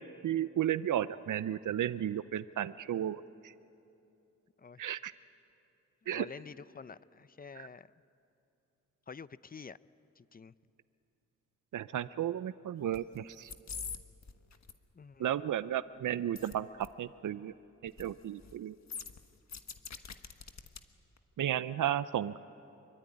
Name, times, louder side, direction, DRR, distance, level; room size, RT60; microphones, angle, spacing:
voice 1, 0.0-3.5 4.8-5.1 6.1-6.3 7.6-7.7 11.7-13.5 15.2-17.5 17.8-18.8 21.4-22.4, right 11 dB, 85° right, 14 dB, 0.6 m, -34 dB
voice 2, 6.1-7.9 9.1-9.8 10.2-10.5 15.0-15.4, left 5 dB, 30° left, 16 dB, 0.6 m, -48 dB
sound 1, 12.9-13.2 13.4-14.0 14.2-14.7 16.4-16.5 16.8-16.9 17.9-18.1 18.4-18.5 18.9-20.8 21.2-21.3, left 6 dB, 60° left, 1.4 m, -43 dB
26.0 x 23.5 x 9.7 m, 2.7 s
wide cardioid pair, 80°, 30 cm